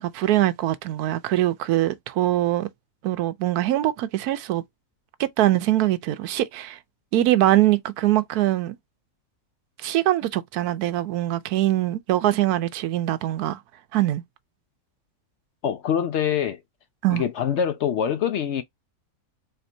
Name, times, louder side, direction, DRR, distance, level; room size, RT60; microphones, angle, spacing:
voice 1, 0.0-2.7 3.0-4.6 5.2-6.8 7.1-8.8 9.8-13.6 13.9-14.2 17.0-17.2, right 14 dB, 85° right, 1.1 m, -22 dB
voice 2, 15.6-16.6 17.1-18.6, left 8 dB, 70° left, 0.7 m, -24 dB
4.4 x 2.8 x 2.7 m
omnidirectional pair, 1.6 m